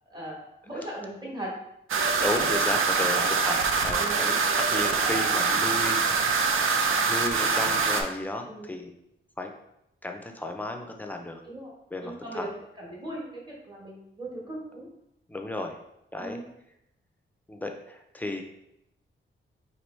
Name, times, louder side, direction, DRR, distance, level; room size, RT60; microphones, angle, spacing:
voice 1, 0.1-1.6 4.0-4.2 8.5-8.7 11.4-11.7 12.0-12.5 12.8-14.9 16.2-16.5, right 1 dB, 20° right, -3 dB, 1.1 m, -38 dB
sound 1, 1.9-8.0, right 5 dB, 75° right, 0.5 m, -24 dB
voice 2, 2.2-6.1 7.1-8.9 9.4-9.5 10.0-11.4 11.9-12.5 15.3-15.8 16.1-16.4 17.5-18.4, left 2 dB, 10° left, 4 dB, 0.3 m, -34 dB
4.5 x 2.9 x 3.1 m, 0.82 s
wide cardioid pair, 165°, 21 cm